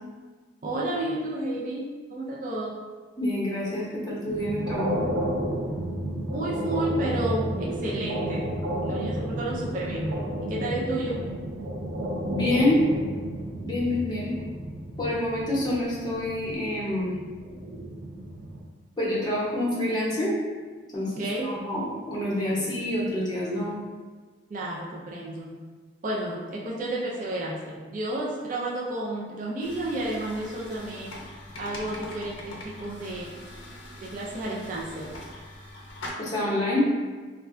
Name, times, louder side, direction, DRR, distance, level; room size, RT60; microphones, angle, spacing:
voice 1, 0.6-2.7 6.3-8.5 8.8-10.1 10.5-11.2 21.2-21.5 24.5-25.5 26.0-31.1 31.6-33.3 34.0-35.1, right 1 dB, 40° right, -4 dB, 0.4 m, -31 dB
voice 2, 3.2-5.0 12.2-12.8 13.6-14.3 15.0-17.1 19.0-20.3 20.9-23.8 36.2-36.9, left 1 dB, 20° left, -7 dB, 0.7 m, -27 dB
sound 1, 4.3-18.6, equal, 90° right, 0.6 m, -32 dB
sound 2, 29.6-36.1, left 1 dB, 65° left, 0.5 m, -42 dB
2.4 x 2.1 x 3.5 m, 1.4 s
head